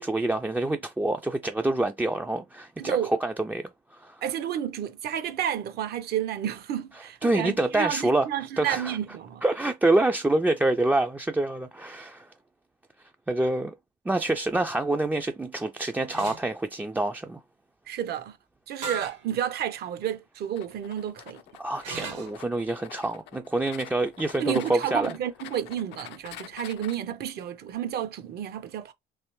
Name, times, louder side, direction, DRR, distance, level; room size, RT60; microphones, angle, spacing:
voice 1, 0.0-4.2 7.2-8.3 8.6-9.0 9.4-12.3 13.3-13.7 14.1-17.4 21.6-25.2, right 2 dB, 10° right, 0.3 m, -26 dB
voice 2, 2.8-3.1 4.2-9.4 17.9-18.4 18.7-21.4 24.4-28.9, right 10 dB, 60° right, 0.7 m, -31 dB
sound 1, 16.1-16.4 18.8-19.2 19.8-19.9 21.8-22.4, right 5 dB, 80° right, 1.6 m, -35 dB
sound 2, 20.5-27.0, left 13 dB, 75° left, 0.5 m, -46 dB
3.2 x 2.9 x 3.0 m
supercardioid pair, 80°, 18 cm